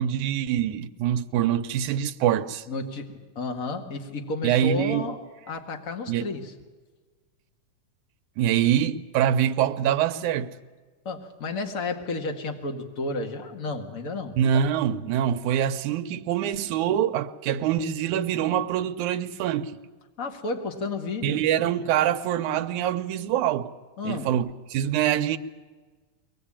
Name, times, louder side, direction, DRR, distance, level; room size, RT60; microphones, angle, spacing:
voice 1, 0.0-2.6 4.4-5.1 6.1-6.3 8.4-10.5 14.4-19.7 21.2-23.7 24.0-25.4, right 10 dB, 80° right, 2.3 m, -24 dB
voice 2, 2.7-6.5 11.1-14.4 20.2-21.4 24.0-24.3, left 3 dB, 30° left, 1.9 m, -32 dB
23.0 x 19.0 x 8.8 m
omnidirectional pair, 3.5 m